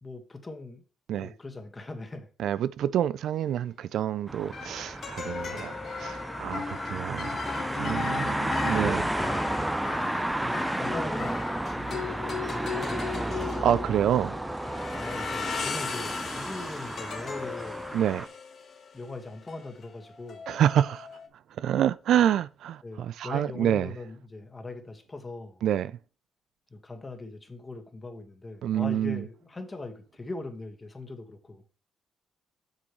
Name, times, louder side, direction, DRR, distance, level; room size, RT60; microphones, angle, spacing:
voice 1, 0.0-0.8 1.2-2.3 5.5-5.8 6.4-6.7 8.8-9.8 10.1-13.4 14.7-17.9 18.9-20.4 22.8-25.6 26.7-31.6, left 2 dB, 25° left, 1.7 m, -41 dB
voice 2, 2.4-7.4 7.8-9.0 13.6-14.4 17.9-18.3 20.5-21.1 21.6-23.9 25.6-26.0 28.6-29.2, right 10 dB, 75° right, 0.3 m, -27 dB
sound 1, 3.4-3.6 4.5-21.3, left 6 dB, 55° left, 1.4 m, -37 dB
sound 2, 4.3-18.3, right 1 dB, 10° right, 0.4 m, -32 dB
8.2 x 6.1 x 3.2 m
cardioid pair, 90°, 0 cm